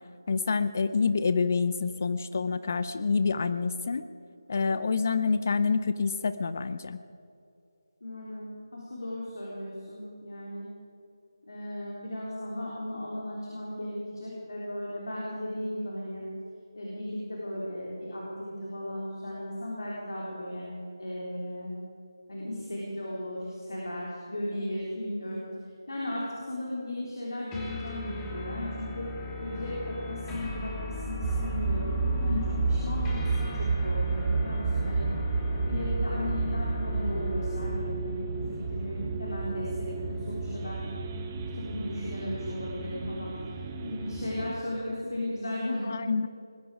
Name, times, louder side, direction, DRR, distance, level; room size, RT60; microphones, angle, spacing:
voice 1, 0.3-4.0 4.5-7.0 32.3-32.7 45.8-46.3, left 5 dB, 35° left, 13 dB, 0.5 m, -27 dB
voice 2, 8.0-10.7 11.5-16.2 16.7-20.7 21.0-21.7 22.3-25.4 25.9-29.1 29.4-35.1 35.6-38.4 38.7-40.8 41.5-43.3 43.8-46.0, left 1 dB, 60° left, -5 dB, 3.8 m, -36 dB
sound 1, 27.5-37.8, equal, 10° left, 1.3 m, -34 dB
sound 2, 31.2-44.5, right 4 dB, 20° right, 0.9 m, -32 dB
20.5 x 13.0 x 5.0 m, 2.6 s
figure-of-eight pair, 160°, 2 cm